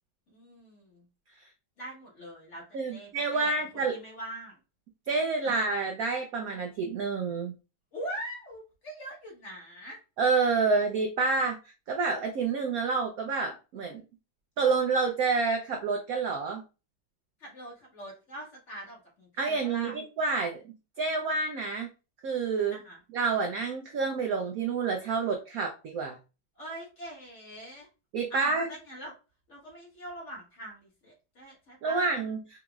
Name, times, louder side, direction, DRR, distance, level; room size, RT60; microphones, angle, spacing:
voice 1, 0.3-1.0 1.8-2.6 2.9-4.6 5.4-5.5 7.9-10.0 17.4-20.0 22.7-23.0 26.5-27.9 28.3-29.1 29.5-32.1, right 1 dB, 40° left, -3 dB, 1.6 m, -42 dB
voice 2, 2.7-3.9 5.1-7.5 10.2-11.6 11.9-14.0 14.6-16.6 19.4-20.6 21.0-21.9 22.2-22.8 23.1-26.2 28.1-28.7 31.8-32.4, right 4 dB, 70° right, 3 dB, 0.8 m, -28 dB
5.0 x 2.9 x 2.3 m, 0.31 s
omnidirectional pair, 2.1 m